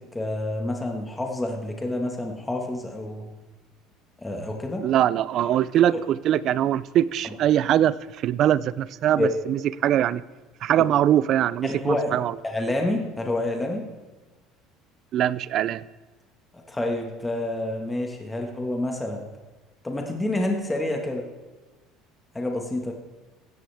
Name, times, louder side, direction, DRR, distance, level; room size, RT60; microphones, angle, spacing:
voice 1, 0.0-3.3 4.2-4.8 5.9-6.0 9.2-9.3 11.6-12.1 12.4-13.9 16.7-19.2 19.8-21.2 22.3-22.9, left 1 dB, 10° left, 2 dB, 1.7 m, -28 dB
voice 2, 4.8-8.0 8.2-10.2 10.6-12.3 15.1-15.8, right 11 dB, 50° right, 19 dB, 0.4 m, -22 dB
15.5 x 12.5 x 3.5 m, 1.2 s
cardioid pair, 120°, 0 cm